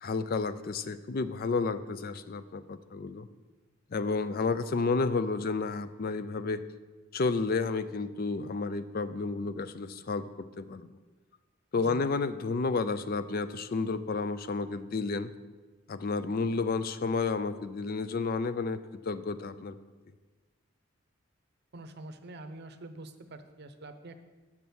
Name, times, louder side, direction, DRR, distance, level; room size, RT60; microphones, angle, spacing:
voice 1, 0.0-3.3 3.9-6.6 7.1-10.3 10.6-10.9 11.7-15.3 15.9-18.8 19.1-19.8, left 4 dB, 45° left, 13 dB, 0.4 m, -31 dB
voice 2, 21.7-24.2, right 2 dB, 55° right, 9 dB, 0.7 m, -45 dB
7.3 x 6.1 x 7.0 m, 1.3 s
head